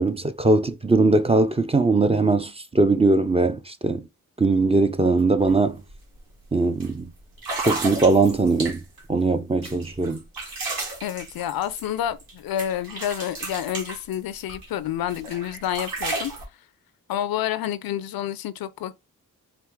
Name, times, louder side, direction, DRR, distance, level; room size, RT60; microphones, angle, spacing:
voice 1, 0.0-4.1 4.4-5.8 6.5-7.1 7.7-8.8 9.1-10.2, right 3 dB, 15° right, 0.5 m, -20 dB
sound 1, 5.4-5.5 5.9-6.2 6.8-6.9 7.4-9.0 9.6-12.3 12.6-14.7 15.1-16.4, right 3 dB, 75° right, 1.9 m, -33 dB
voice 2, 11.0-16.3 17.1-18.9, left 11 dB, 85° left, 0.5 m, -29 dB
4.7 x 2.5 x 3.5 m
cardioid pair, 70°, 35 cm